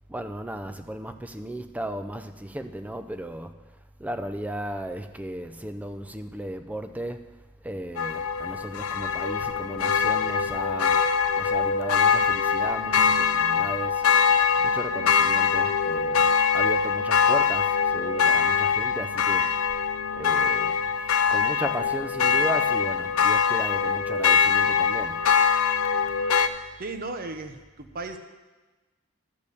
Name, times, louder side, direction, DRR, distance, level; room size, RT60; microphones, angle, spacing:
voice 1, 0.1-3.6 4.0-7.3 7.6-11.0 11.4-14.0 14.6-19.5 20.1-25.3, right 1 dB, 5° right, 0.5 m, -35 dB
sound 1, 8.0-26.5, left 6 dB, 85° left, 0.5 m, -23 dB
voice 2, 26.8-28.2, right 3 dB, 45° right, 0.8 m, -35 dB
12.0 x 5.2 x 6.8 m
head